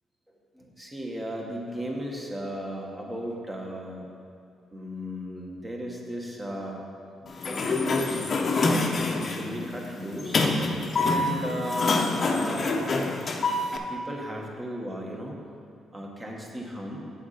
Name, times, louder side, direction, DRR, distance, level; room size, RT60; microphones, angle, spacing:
voice 1, 0.3-4.1 4.7-6.8 7.2-13.2 13.9-15.4 15.9-17.0, equal, 20° right, -1 dB, 1.4 m, -36 dB
Sliding door, 7.3-13.8, left 3 dB, 45° left, 0.8 m, -26 dB
8.3 x 6.6 x 4.2 m, 2.4 s
cardioid pair, 90°, 0 cm